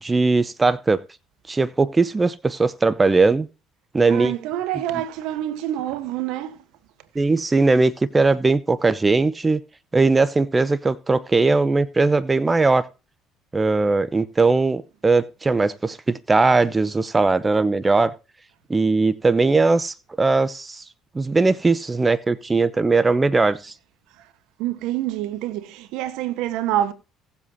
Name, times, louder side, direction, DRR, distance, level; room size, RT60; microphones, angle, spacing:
voice 1, 0.0-1.0 1.5-3.5 3.9-4.3 7.2-9.6 9.9-12.8 13.5-18.1 18.7-20.8 21.1-23.7, right 3 dB, 25° right, 0.7 m, -19 dB
voice 2, 4.0-6.6 24.6-26.9, right 12 dB, 75° right, 1.0 m, -26 dB
17.5 x 7.5 x 2.7 m
supercardioid pair, 65°, 0 cm